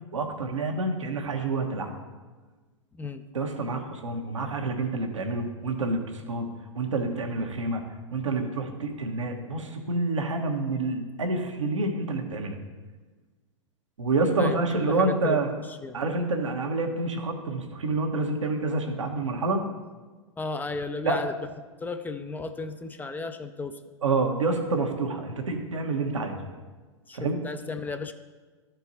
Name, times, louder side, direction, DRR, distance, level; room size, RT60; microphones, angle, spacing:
voice 1, 0.1-1.9 3.3-6.5 6.7-7.8 8.1-12.6 14.0-15.5 15.9-19.6 21.0-21.2 24.0-26.4 27.1-27.4, right 3 dB, 85° right, 3 dB, 1.2 m, -28 dB
voice 2, 14.4-15.4 15.7-16.0 20.4-21.3 21.8-23.8 27.1-28.1, left 4 dB, 10° left, 8 dB, 0.4 m, -34 dB
12.0 x 4.5 x 4.1 m, 1.3 s
hypercardioid pair, 105°, 16 cm